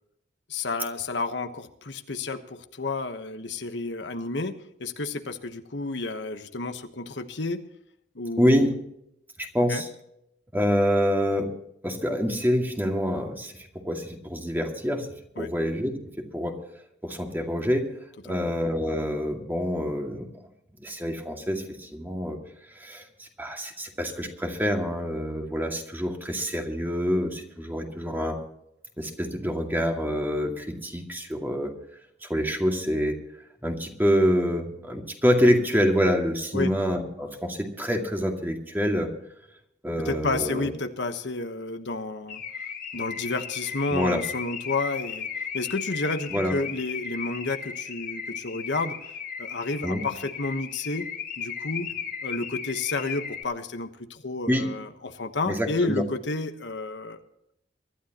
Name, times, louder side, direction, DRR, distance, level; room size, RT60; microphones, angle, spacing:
voice 1, 0.5-7.6 8.1-8.7 9.7-9.8 15.4-15.5 18.3-18.5 36.5-36.7 40.0-42.4 42.9-45.3 45.5-49.0 49.4-51.1 51.4-51.9 52.2-57.2, left 3 dB, 80° left, 7 dB, 1.2 m, -31 dB
voice 2, 8.4-8.7 9.4-9.9 10.5-11.5 11.8-15.1 15.4-15.9 16.3-16.6 17.0-17.9 18.2-20.3 20.8-22.4 22.7-28.4 29.0-31.7 32.2-33.2 33.6-39.1 39.8-40.7 43.9-44.2 46.3-46.6 49.8-50.0 54.5-54.7 55.5-56.0, equal, 10° right, 2 dB, 2.2 m, -26 dB
Car / Alarm, 42.3-53.4, left 7 dB, 55° left, 1.6 m, -36 dB
23.5 x 12.5 x 3.0 m, 0.77 s
head